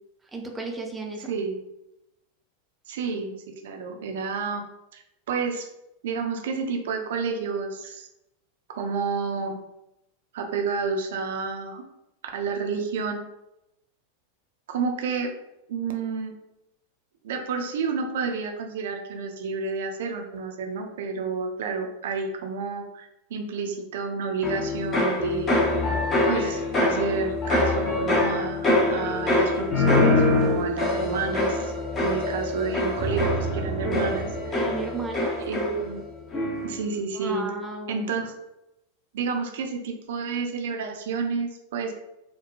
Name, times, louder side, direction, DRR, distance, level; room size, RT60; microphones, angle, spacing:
voice 1, 0.3-1.3 34.5-35.4 37.1-38.1, right 3 dB, 10° right, 1 dB, 0.6 m, -34 dB
voice 2, 1.3-1.6 2.9-3.3 3.6-4.6 4.9-5.0 5.3-5.7 6.0-8.1 8.7-9.6 10.3-11.8 12.3-13.2 14.7-15.3 15.7-16.3 17.2-25.6 26.2-31.7 32.0-34.3 35.5-36.0 36.6-37.5 37.9-38.5 39.1-41.9, right 5 dB, 55° right, 3 dB, 0.5 m, -30 dB
sound 1, 24.4-36.0 36.3-36.8, left 2 dB, 25° left, 0.8 m, -24 dB
4.5 x 2.1 x 2.5 m, 0.87 s
figure-of-eight pair, 90°, 0 cm